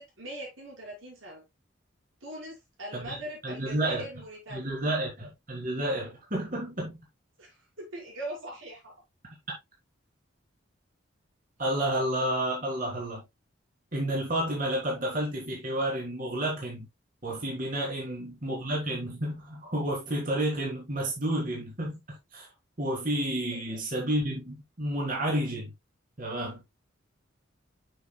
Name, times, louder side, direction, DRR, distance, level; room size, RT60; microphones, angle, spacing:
voice 1, 0.0-1.4 2.2-4.7 7.4-8.9 23.7-23.8, right 1 dB, 90° right, 5.1 m, -41 dB
voice 2, 3.4-4.0 4.5-7.0 11.6-13.2 13.9-16.9 17.2-22.0 22.3-22.5 22.8-25.7 26.2-26.6, right 1 dB, 45° right, 3.5 m, -30 dB
9.1 x 6.4 x 2.3 m
head